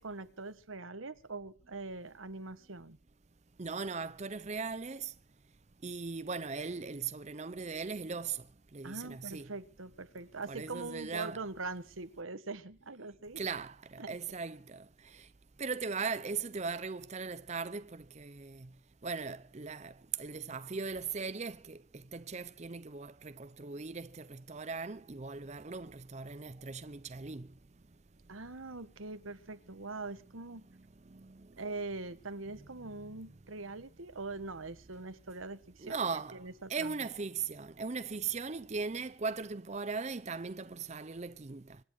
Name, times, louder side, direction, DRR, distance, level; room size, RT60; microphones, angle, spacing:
voice 1, 0.0-3.0 8.8-13.4 14.0-14.2 28.3-30.7 31.6-36.0 36.3-37.0, right 3 dB, 90° right, 1.4 m, -42 dB
voice 2, 3.6-5.1 5.8-8.4 8.7-9.5 10.5-11.4 13.4-15.3 15.6-18.7 19.0-27.5 31.1-31.5 35.8-36.4 36.7-41.8, right 5 dB, 35° right, 0.6 m, -39 dB
25.5 x 9.9 x 4.8 m
head